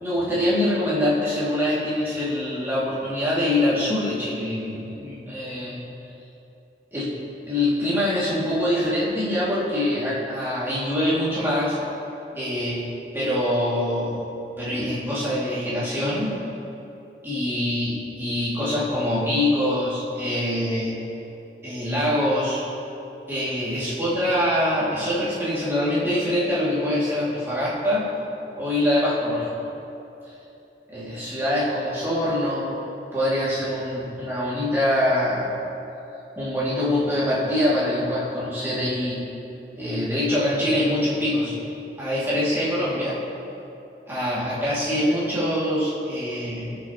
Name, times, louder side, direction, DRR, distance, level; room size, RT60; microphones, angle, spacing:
voice 1, 0.0-5.8 6.9-7.1 7.5-11.8 12.3-12.9 13.1-14.3 14.6-16.5 17.2-21.0 21.6-22.7 23.3-28.2 28.6-29.4 30.9-32.8 33.1-35.6 36.4-39.2 39.7-41.5 42.0-43.2 44.1-46.7, left 1 dB, 15° right, -9 dB, 2.2 m, -24 dB
17.5 x 5.9 x 2.9 m, 2.9 s
head